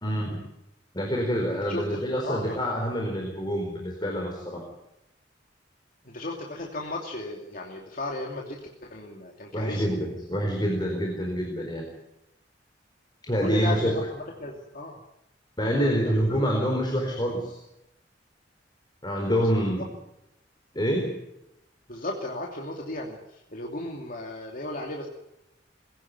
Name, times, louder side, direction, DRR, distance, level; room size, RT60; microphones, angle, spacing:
voice 1, 0.0-0.4 0.9-4.6 9.5-11.9 13.2-14.1 15.6-17.6 19.0-19.9 20.7-21.1, equal, 25° left, 1 dB, 4.3 m, -26 dB
voice 2, 1.5-2.6 6.0-9.8 13.4-15.0 16.1-16.2 19.3-19.5 19.8-19.9 21.9-25.1, left 1 dB, 50° left, 0 dB, 2.7 m, -35 dB
22.0 x 17.0 x 9.5 m, 0.86 s
head